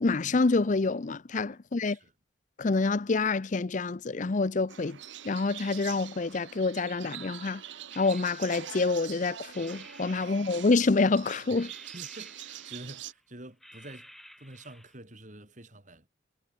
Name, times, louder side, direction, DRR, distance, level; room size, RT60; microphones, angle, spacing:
voice 1, 0.0-2.0 2.6-5.0 5.2-7.6 8.0-11.7, left 3 dB, 40° left, 0.5 m, -27 dB
voice 2, 1.5-2.1 10.1-10.6 11.5-11.6 11.9-16.1, right 1 dB, 40° right, 3.5 m, -48 dB
sound 1, 4.7-13.1, right 10 dB, 75° right, 0.9 m, -44 dB
sound 2, 7.9-9.1 9.5-11.2 11.6-13.2 13.6-15.0, equal, ahead, 4.3 m, -54 dB
head